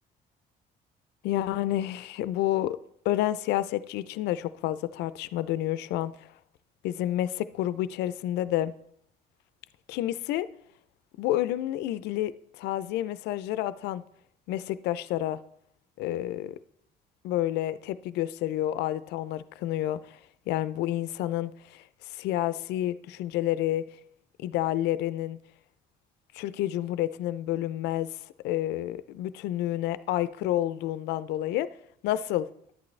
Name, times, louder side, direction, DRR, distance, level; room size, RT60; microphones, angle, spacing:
voice 1, 1.2-2.8 3.1-6.3 6.8-8.7 9.9-10.5 11.2-14.0 14.5-15.4 16.0-16.6 17.2-20.2 20.5-23.8 24.4-25.4 26.3-28.1 28.4-31.7 32.0-32.5, left 13 dB, 80° left, 0.4 m, -29 dB
11.0 x 8.5 x 3.2 m
cardioid pair, 110°, 17 cm